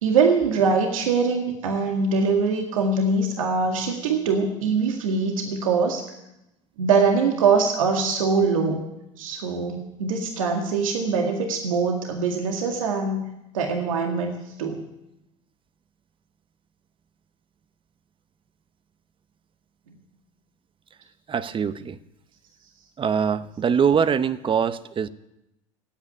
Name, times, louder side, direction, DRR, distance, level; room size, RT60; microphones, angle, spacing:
voice 1, 0.0-6.0 6.8-8.8 9.2-13.2 13.5-14.8, right 4 dB, 85° right, 3 dB, 2.0 m, -23 dB
voice 2, 21.3-22.0 23.0-25.1, right 7 dB, 30° right, 14 dB, 0.9 m, -23 dB
16.0 x 9.0 x 9.7 m, 0.89 s
hypercardioid pair, 80°, 17 cm